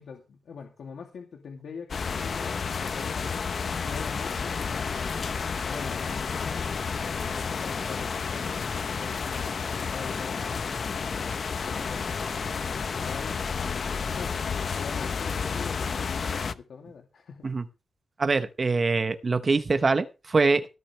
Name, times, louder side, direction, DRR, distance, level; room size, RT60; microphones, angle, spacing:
voice 1, 0.0-5.1 5.6-11.3 11.6-12.3 12.6-17.5, left 6 dB, 80° left, 2 dB, 2.7 m, -43 dB
sound 1, 1.9-16.5, left 5 dB, 50° left, 0.9 m, -31 dB
voice 2, 18.2-20.7, right 4 dB, 35° right, 10 dB, 1.0 m, -24 dB
18.0 x 12.5 x 3.4 m, 0.30 s
wide cardioid pair, 145°, 0 cm